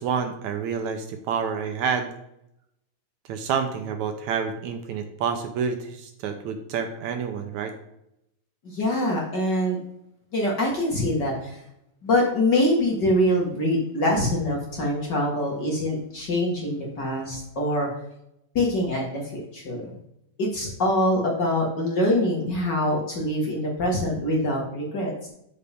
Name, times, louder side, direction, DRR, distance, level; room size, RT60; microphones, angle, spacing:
voice 1, 0.0-2.1 3.3-7.7, right 6 dB, 75° right, 6 dB, 2.1 m, -28 dB
voice 2, 8.6-9.8 10.3-11.6 12.0-17.9 18.6-19.9 20.4-25.3, left 1 dB, 40° left, -2 dB, 1.9 m, -24 dB
12.0 x 5.7 x 3.5 m, 0.80 s
omnidirectional pair, 3.6 m